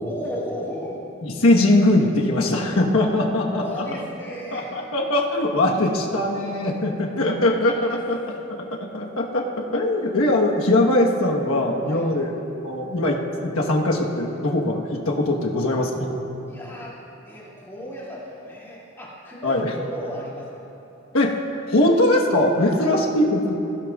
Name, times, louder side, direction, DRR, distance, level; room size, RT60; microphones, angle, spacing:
voice 1, 0.0-1.0 3.5-4.7 7.6-8.0 11.9-12.1 16.5-17.0 17.3-20.6 22.6-23.0, equal, 10° left, -7 dB, 2.5 m, -35 dB
voice 2, 1.2-4.0 4.5-8.2 8.9-9.5 9.7-16.1 19.4-19.7 21.1-21.4 21.7-23.5, left 1 dB, 85° left, -1 dB, 1.2 m, -21 dB
22.0 x 15.5 x 2.4 m, 3.0 s
head